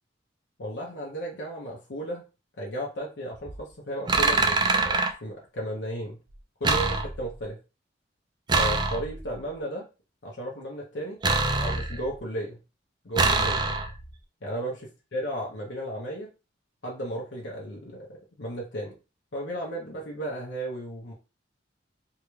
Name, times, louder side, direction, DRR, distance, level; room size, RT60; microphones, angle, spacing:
voice 1, 0.6-2.2 2.6-6.2 6.6-7.6 8.6-9.8 10.2-11.2 11.6-12.6 13.0-13.6 14.4-14.7 15.1-16.3 16.8-19.0 19.3-21.1, right 1 dB, 70° left, -3 dB, 0.9 m, -34 dB
sound 1, 3.3-3.6 4.1-5.1 6.6-7.4 8.5-9.3 11.2-12.2 13.2-14.1, right 3 dB, 25° right, 0.4 m, -24 dB
3.7 x 2.3 x 3.1 m, 0.30 s
head